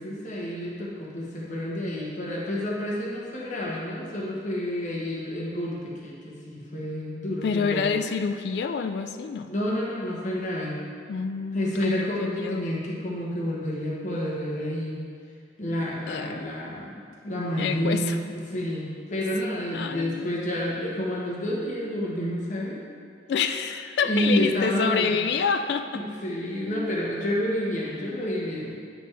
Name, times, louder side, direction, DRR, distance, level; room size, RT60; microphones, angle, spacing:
voice 1, 0.0-7.8 9.5-10.8 11.5-15.0 15.6-22.8 24.0-25.1 25.9-28.8, equal, 45° left, -4 dB, 1.1 m, -29 dB
voice 2, 7.4-9.5 11.1-12.6 16.1-16.5 17.6-18.2 19.7-20.4 23.3-26.0, left 5 dB, 70° left, 7 dB, 0.3 m, -27 dB
9.7 x 5.1 x 3.3 m, 2.2 s
head